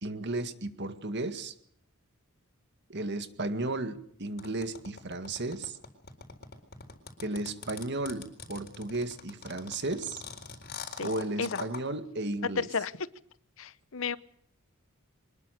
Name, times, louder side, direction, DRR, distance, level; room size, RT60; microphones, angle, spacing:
voice 1, 0.0-1.5 2.9-5.8 7.2-10.2 11.0-12.7, right 2 dB, 50° right, 10 dB, 1.9 m, -34 dB
sound 1, 4.4-11.8, left 5 dB, 45° left, 4.1 m, -42 dB
voice 2, 12.6-13.1 13.6-14.2, left 5 dB, 60° left, 17 dB, 0.8 m, -32 dB
24.0 x 20.5 x 6.7 m, 0.64 s
head